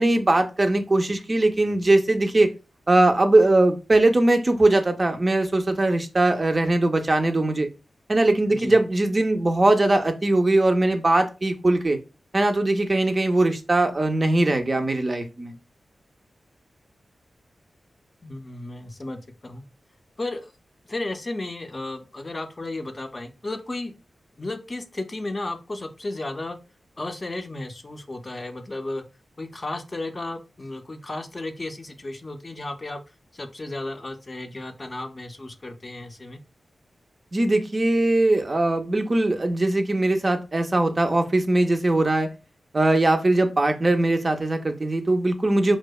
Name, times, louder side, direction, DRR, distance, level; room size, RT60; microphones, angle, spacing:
voice 1, 0.0-2.5 2.9-7.7 8.1-12.0 12.3-15.5 37.3-42.3 42.7-45.8, right 2 dB, 35° right, 5 dB, 0.3 m, -20 dB
voice 2, 18.2-19.6 20.2-20.5 20.9-23.9 24.4-26.6 27.0-29.0 29.4-33.0 33.3-36.4, left 2 dB, 35° left, 7 dB, 0.4 m, -34 dB
2.6 x 2.1 x 2.2 m, 0.29 s
cardioid pair, 65°, 0 cm